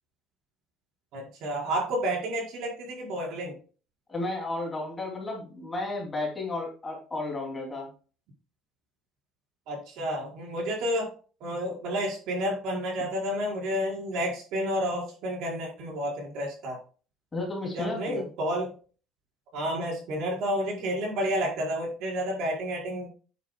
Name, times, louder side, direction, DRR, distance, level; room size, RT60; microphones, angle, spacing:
voice 1, 1.1-3.6 9.7-11.1 11.4-16.8 17.7-18.7 19.5-23.1, equal, 65° right, -1 dB, 4.9 m, -30 dB
voice 2, 4.1-7.9 17.3-18.3, left 2 dB, 15° left, -1 dB, 2.9 m, -33 dB
9.4 x 8.9 x 2.3 m, 0.36 s
cardioid pair, 160°, 0 cm